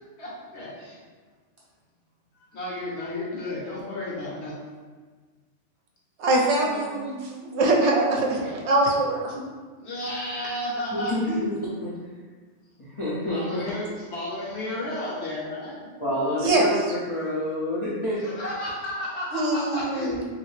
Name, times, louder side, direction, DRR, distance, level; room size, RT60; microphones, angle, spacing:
voice 1, 0.2-1.0 2.3-4.6 9.7-11.5 13.3-15.9 18.2-20.3, left 1 dB, 65° left, -5 dB, 1.1 m, -33 dB
voice 2, 6.2-9.3 16.4-16.6 19.3-20.3, right 2 dB, 70° right, -2 dB, 0.8 m, -23 dB
voice 3, 10.9-11.5 11.8-11.9 12.8-13.6 16.0-18.2, left 1 dB, 40° left, -9 dB, 0.4 m, -28 dB
3.1 x 2.6 x 3.1 m, 1.5 s
omnidirectional pair, 1.3 m